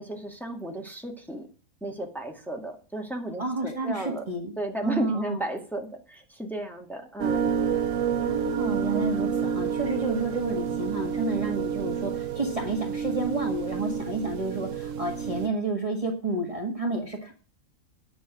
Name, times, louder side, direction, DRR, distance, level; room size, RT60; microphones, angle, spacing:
voice 1, 0.0-1.5 1.8-4.2 4.6-7.5, equal, ahead, 1 dB, 2.0 m, -34 dB
voice 2, 3.4-4.5 4.8-5.4 8.2-17.3, right 2 dB, 25° right, 2 dB, 1.7 m, -30 dB
sound 1, 7.2-15.5, right 7 dB, 60° right, 1.2 m, -29 dB
10.0 x 6.4 x 7.6 m, 0.37 s
omnidirectional pair, 1.5 m